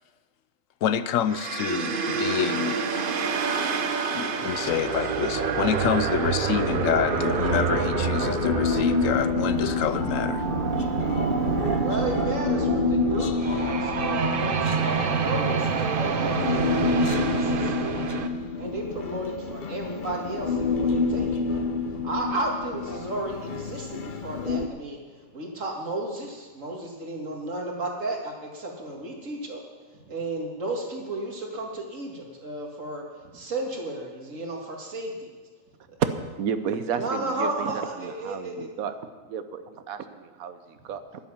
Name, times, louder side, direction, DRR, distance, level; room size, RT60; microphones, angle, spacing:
voice 1, 0.8-3.0 4.1-10.4, left 9 dB, 70° left, 14 dB, 0.9 m, -27 dB
sound 1, 1.3-18.3, right 5 dB, 45° right, 0.8 m, -27 dB
Human voice, 6.5-24.7, left 4 dB, 50° left, 0.7 m, -28 dB
sound 2, 8.5-11.8, right 2 dB, 5° left, 1.1 m, -44 dB
voice 2, 11.8-18.0 18.5-21.6 21.9-35.3 35.9-36.0 37.0-38.7, right 2 dB, 65° right, 0 dB, 2.5 m, -33 dB
voice 3, 36.4-38.9 39.3-41.2, right 7 dB, 85° right, 10 dB, 1.3 m, -33 dB
10.5 x 10.5 x 7.1 m, 1.4 s
omnidirectional pair, 1.4 m